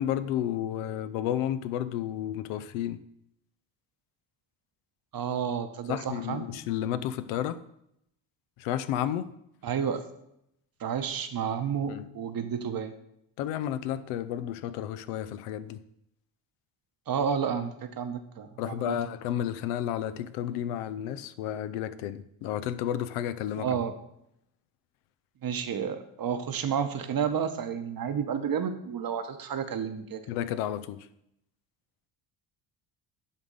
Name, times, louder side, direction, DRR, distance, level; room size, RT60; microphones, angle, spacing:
voice 1, 0.0-3.0 5.9-7.6 8.6-9.3 11.9-12.1 13.4-15.8 18.6-23.8 30.3-31.0, left 11 dB, 85° left, 12 dB, 0.6 m, -32 dB
voice 2, 5.1-6.5 9.6-10.0 10.8-12.9 17.1-19.0 23.6-23.9 25.4-30.2, right 7 dB, 45° right, 9 dB, 1.0 m, -31 dB
10.5 x 3.6 x 5.4 m, 0.77 s
supercardioid pair, 60°, 49 cm